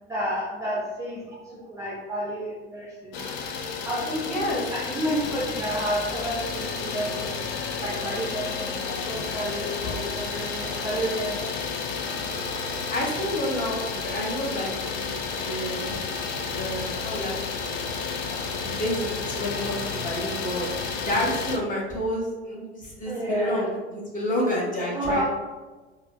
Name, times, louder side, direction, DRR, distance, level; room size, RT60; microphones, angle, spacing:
voice 1, 0.1-7.5 7.8-11.7 12.2-12.3 23.1-23.6 24.9-25.2, right 1 dB, 10° right, -5 dB, 0.5 m, -31 dB
Idling, 3.1-21.6, left 5 dB, 45° left, 0.4 m, -31 dB
voice 2, 4.2-4.6 12.9-15.9 16.4-17.3 17.6-17.7 18.6-20.7 21.1-25.2, equal, 25° left, -4 dB, 1.1 m, -29 dB
4.2 x 2.1 x 2.5 m, 1.2 s
figure-of-eight pair, 75°, 34 cm